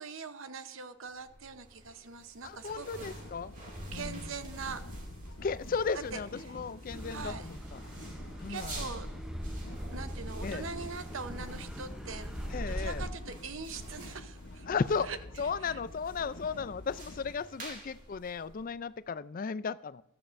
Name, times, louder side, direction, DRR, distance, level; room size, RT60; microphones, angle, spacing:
voice 1, 0.0-3.2 3.9-4.8 6.1-6.2 7.1-7.5 8.5-9.1 9.9-12.3 12.7-14.7 15.1-15.2 15.6-15.8, right 5 dB, 65° right, 10 dB, 0.9 m, -42 dB
sound 1, 1.1-19.0, right 1 dB, 35° right, 2.4 m, -49 dB
voice 2, 2.4-3.5 3.9-4.3 5.4-7.8 8.4-8.9 10.4-10.7 12.5-13.1 14.7-20.0, left 5 dB, 40° left, 16 dB, 0.3 m, -35 dB
sound 2, 3.0-17.3, left 1 dB, 65° left, 0.9 m, -49 dB
Car passing by / Accelerating revving vroom, 6.9-13.1, equal, 5° right, 0.6 m, -40 dB
15.0 x 12.5 x 2.6 m, 0.82 s
head